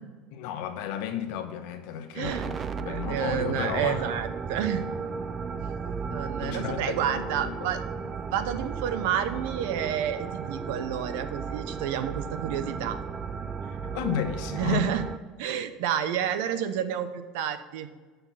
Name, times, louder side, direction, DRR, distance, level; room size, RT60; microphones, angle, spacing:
voice 1, 0.3-4.1 6.4-7.7 13.6-14.9, left 9 dB, 65° left, 6 dB, 1.0 m, -33 dB
voice 2, 2.1-2.5 2.8-4.9 6.1-7.8 8.3-13.0 14.5-15.0 15.4-17.9, right 9 dB, 70° right, 11 dB, 0.7 m, -30 dB
sound 1, 2.2-15.2, right 5 dB, 20° right, 0.3 m, -35 dB
6.8 x 6.0 x 5.7 m, 1.4 s
cardioid pair, 180°, 0 cm